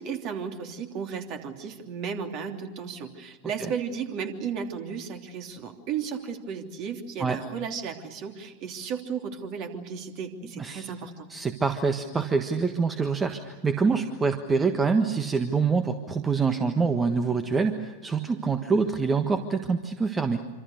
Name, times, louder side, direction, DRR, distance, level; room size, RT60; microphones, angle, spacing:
voice 1, 0.0-11.3, right 6 dB, 40° right, 5 dB, 3.1 m, -34 dB
voice 2, 10.6-10.9 11.3-20.5, right 5 dB, 15° right, 8 dB, 1.5 m, -25 dB
26.5 x 26.5 x 6.6 m, 1.2 s
figure-of-eight pair, 90°, 0 cm